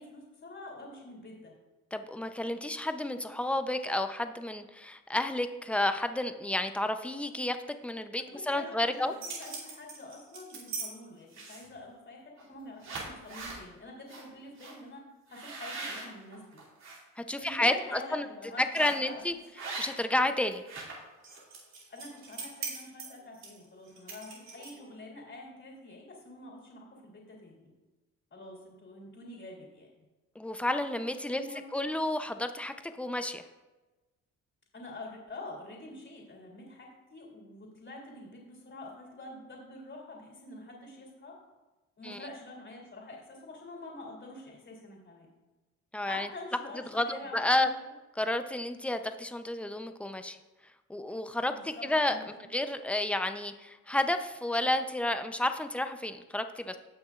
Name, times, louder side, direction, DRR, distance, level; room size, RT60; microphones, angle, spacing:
voice 1, 0.0-1.5 8.1-15.0 15.3-16.6 17.4-19.4 21.9-27.7 28.3-29.9 31.3-31.7 34.7-41.4 42.0-45.3 46.0-47.7 51.5-52.5, left 2 dB, 40° left, -2 dB, 3.0 m, -46 dB
voice 2, 1.9-7.6 7.8-9.1 17.2-18.3 18.6-19.3 19.8-20.6 30.4-31.4 31.7-33.4 42.0-42.2 45.9-46.3 46.9-47.7 48.2-50.4 50.9-52.2 52.5-56.8, left 1 dB, 5° left, 8 dB, 0.6 m, -31 dB
sound 1, 8.9-10.9 11.3-11.8 12.4-12.5 12.8-13.6 14.1-14.2 14.6-14.7 15.3-17.0 17.4-17.7 18.7-19.1 19.6-20.2 20.4-24.9, right 4 dB, 60° right, 2.8 m, -41 dB
17.0 x 6.0 x 2.5 m, 1.1 s
cardioid pair, 90°, 30 cm